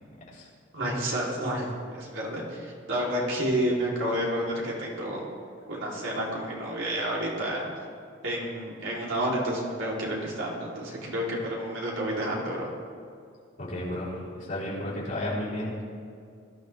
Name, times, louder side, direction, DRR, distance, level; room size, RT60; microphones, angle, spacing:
voice 1, 0.7-5.2 5.7-7.7 8.2-12.7, right 1 dB, 75° right, -4 dB, 3.5 m, -30 dB
voice 2, 13.6-15.7, left 1 dB, 40° left, -7 dB, 4.1 m, -33 dB
20.5 x 12.0 x 3.5 m, 2.3 s
head